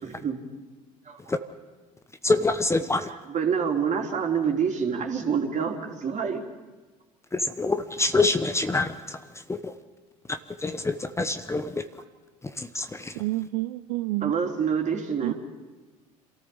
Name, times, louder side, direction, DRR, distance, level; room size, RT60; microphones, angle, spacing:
voice 1, 0.0-0.4 1.0-1.3 3.1-6.4 14.2-15.3, right 6 dB, 40° right, 2 dB, 3.5 m, -27 dB
voice 2, 2.2-3.1 7.3-9.2 9.5-9.7 10.3-11.8 12.6-13.2, left 3 dB, 15° left, 10 dB, 1.0 m, -26 dB
voice 3, 13.2-14.3 15.2-15.3, right 19 dB, 65° right, 12 dB, 0.5 m, -28 dB
27.0 x 14.0 x 7.1 m, 1.2 s
hypercardioid pair, 70°, 19 cm